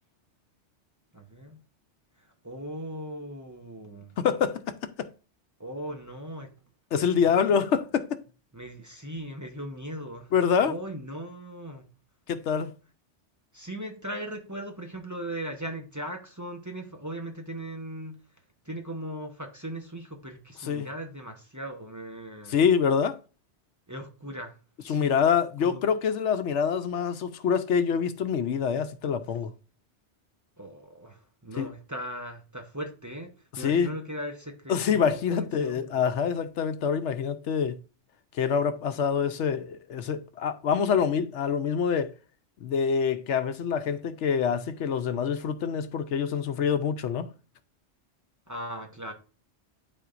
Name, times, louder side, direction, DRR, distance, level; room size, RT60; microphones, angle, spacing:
voice 1, 1.1-1.6 2.4-4.1 5.6-6.5 7.3-7.4 8.5-10.3 10.6-11.8 13.5-18.2 18.6-22.6 23.9-24.5 24.8-25.1 25.6-25.8 30.6-36.0 48.5-49.1, right 1 dB, 15° right, 0.9 m, -38 dB
voice 2, 4.2-5.1 6.9-8.2 10.3-10.8 12.3-12.7 20.6-20.9 22.5-23.2 24.9-29.5 31.6-31.7 33.5-33.9 34.7-37.8 38.3-42.1 42.6-47.3, left 7 dB, 80° left, 1.0 m, -26 dB
12.0 x 4.2 x 2.5 m
omnidirectional pair, 1.2 m